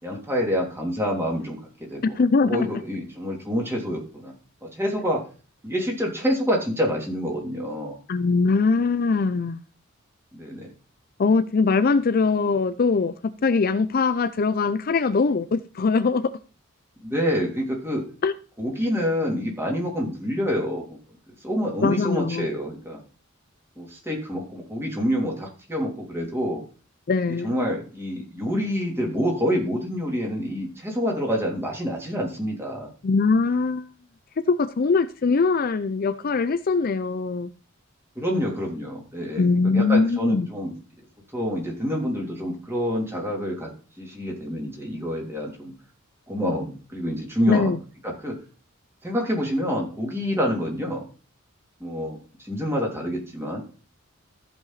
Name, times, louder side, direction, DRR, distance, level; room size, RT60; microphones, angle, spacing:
voice 1, 0.0-2.2 2.4-4.3 4.6-5.2 5.6-8.0 10.3-10.7 17.0-18.0 18.6-20.8 21.4-23.0 23.8-26.6 27.4-32.9 38.1-40.7 41.3-43.7 44.0-45.7 46.3-47.7 48.0-48.4 49.0-51.0 51.8-53.6, equal, 10° right, 3.1 m, -27 dB
voice 2, 2.2-2.7 8.1-9.6 11.2-13.1 13.4-16.3 18.2-18.3 21.8-22.5 27.1-27.5 33.0-33.9 34.4-37.5 39.4-40.5 47.5-47.8, left 4 dB, 45° left, 0.5 m, -22 dB
14.5 x 5.5 x 4.1 m
head